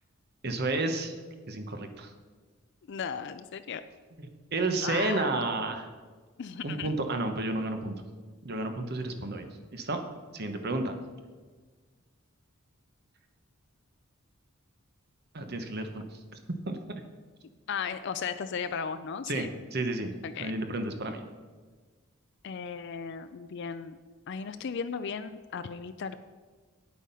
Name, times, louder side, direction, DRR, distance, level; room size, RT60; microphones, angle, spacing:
voice 1, 0.4-1.1 1.5-2.1 4.5-5.9 6.6-8.0 8.4-10.0 10.3-10.9 15.3-16.0 16.7-16.8 19.3-20.1 20.4-21.2, right 2 dB, 50° right, 6 dB, 1.0 m, -31 dB
voice 2, 2.9-3.8 4.8-5.3 6.4-6.9 17.7-19.5 20.2-20.5 22.4-24.0 24.3-26.2, left 6 dB, 55° left, 10 dB, 0.4 m, -36 dB
9.1 x 8.3 x 5.5 m, 1.4 s
head